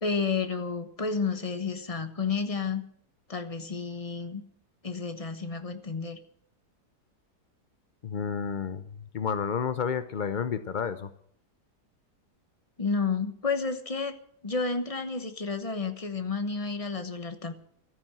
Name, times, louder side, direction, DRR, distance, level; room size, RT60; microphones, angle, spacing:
voice 1, 0.0-2.8 3.3-4.4 4.8-6.2 12.8-14.2 14.4-17.5, left 4 dB, 25° left, 9 dB, 1.1 m, -31 dB
voice 2, 8.0-11.1, left 6 dB, 65° left, 11 dB, 0.4 m, -31 dB
13.5 x 9.5 x 8.9 m, 0.64 s
omnidirectional pair, 1.8 m